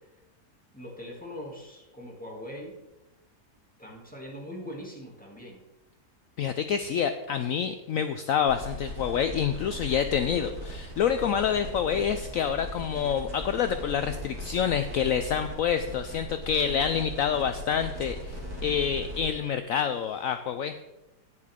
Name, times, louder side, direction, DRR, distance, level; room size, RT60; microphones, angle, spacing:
voice 1, 0.7-2.7 3.8-5.6, equal, 5° left, -3 dB, 2.4 m, -41 dB
voice 2, 6.4-20.8, left 8 dB, 70° left, 9 dB, 0.8 m, -27 dB
sound 1, 8.5-19.3, equal, 60° right, 3.1 m, -38 dB
11.0 x 9.5 x 3.6 m, 0.96 s
omnidirectional pair, 1.8 m